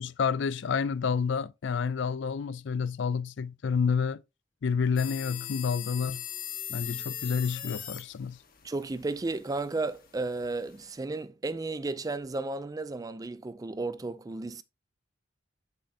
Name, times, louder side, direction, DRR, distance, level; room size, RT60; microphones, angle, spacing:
voice 1, 0.0-4.2 4.6-6.2 6.7-8.4, left 6 dB, 65° left, 0.4 m, -29 dB
sound 1, 5.0-11.0, left 12 dB, 50° left, 1.4 m, -41 dB
voice 2, 8.6-14.6, right 3 dB, 20° right, 0.4 m, -33 dB
7.8 x 6.6 x 2.7 m
head